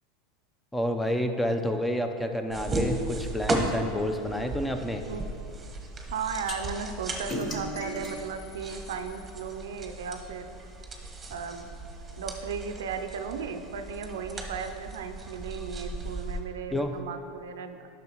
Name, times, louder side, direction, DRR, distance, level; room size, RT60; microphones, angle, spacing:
voice 1, 0.7-5.0 16.7-17.0, equal, 5° left, 6 dB, 0.6 m, -29 dB
haymaking at flaret, 2.5-16.4, right 2 dB, 20° right, 1.0 m, -36 dB
voice 2, 6.1-10.6 11.3-11.7 12.2-17.9, right 6 dB, 80° right, 7 dB, 0.5 m, -36 dB
sound 1, 6.5-6.6 7.3-9.5, left 1 dB, 35° left, 1.1 m, -37 dB
10.0 x 6.3 x 3.0 m, 2.6 s
hypercardioid pair, 95°, 0 cm